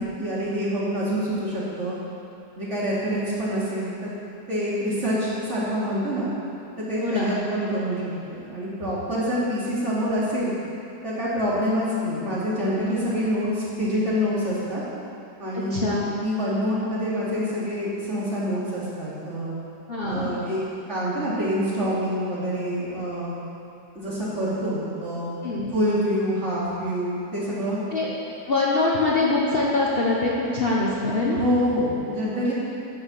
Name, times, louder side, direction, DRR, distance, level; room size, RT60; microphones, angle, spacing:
voice 1, 0.0-1.9 2.6-4.1 4.5-6.3 6.8-10.5 11.0-14.8 15.4-19.5 20.0-20.6 20.9-23.3 23.9-25.3 25.7-27.8 31.3-32.5, equal, 40° right, -8 dB, 3.1 m, -26 dB
voice 2, 7.0-7.3 15.7-16.0 19.9-20.3 25.4-25.7 27.9-28.1 28.5-31.4, left 2 dB, 35° left, -5 dB, 1.2 m, -23 dB
13.0 x 6.3 x 7.2 m, 2.7 s
omnidirectional pair, 1.9 m